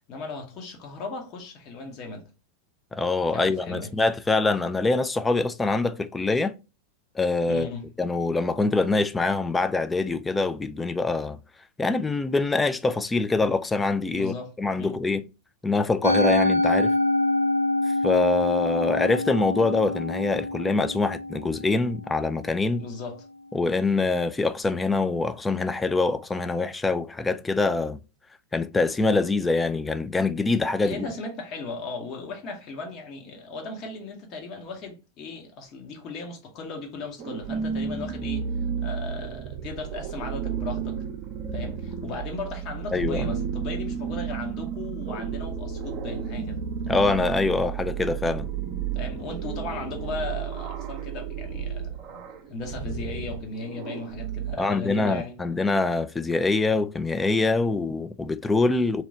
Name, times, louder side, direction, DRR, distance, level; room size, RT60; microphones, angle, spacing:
voice 1, 0.1-2.3 3.3-3.9 7.5-7.9 14.1-15.0 22.8-23.2 30.8-38.4 38.8-41.0 41.5-46.6 48.9-52.2 52.5-55.4, left 3 dB, 35° left, 1.1 m, -37 dB
voice 2, 2.9-6.6 7.2-7.7 8.0-11.4 11.8-15.3 15.6-17.0 18.0-22.8 23.5-28.0 28.5-31.1 42.9-43.4 46.9-48.5 54.6-59.0, left 3 dB, 10° left, 0.3 m, -24 dB
Musical instrument, 16.0-22.4, left 2 dB, 85° right, 0.5 m, -26 dB
sound 1, 37.2-54.5, right 7 dB, 35° right, 0.7 m, -32 dB
3.0 x 3.0 x 3.7 m
figure-of-eight pair, 90°, 0 cm